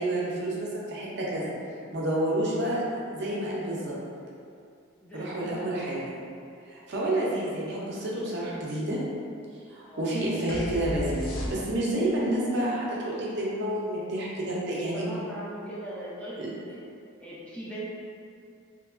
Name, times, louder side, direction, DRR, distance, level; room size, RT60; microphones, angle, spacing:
voice 1, 0.0-1.5 1.9-2.8 3.1-4.0 5.1-6.0 6.7-9.0 9.7-15.0 16.4-16.5, right 1 dB, 55° right, -5 dB, 0.5 m, -29 dB
voice 2, 5.0-5.8 9.8-10.1 14.7-16.8 17.2-17.9, right 1 dB, 5° left, -9 dB, 0.3 m, -40 dB
sound 1, 10.5-12.0, equal, 85° left, 0.4 m, -33 dB
2.8 x 2.2 x 2.4 m, 2.4 s
head